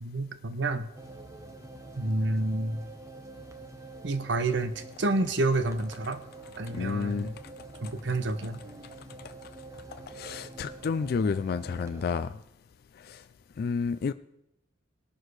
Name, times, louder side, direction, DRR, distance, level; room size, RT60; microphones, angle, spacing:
voice 1, 0.0-0.9 2.0-2.8 4.0-6.2 6.6-7.4 7.8-8.6, right 2 dB, 60° right, 10 dB, 0.9 m, -29 dB
sound 1, 0.9-12.2, right 2 dB, 15° right, 0.8 m, -46 dB
voice 2, 6.7-7.3 10.1-12.4 13.1-13.2 13.6-14.1, left 5 dB, 50° left, 12 dB, 0.3 m, -30 dB
19.0 x 6.4 x 4.8 m, 0.83 s
head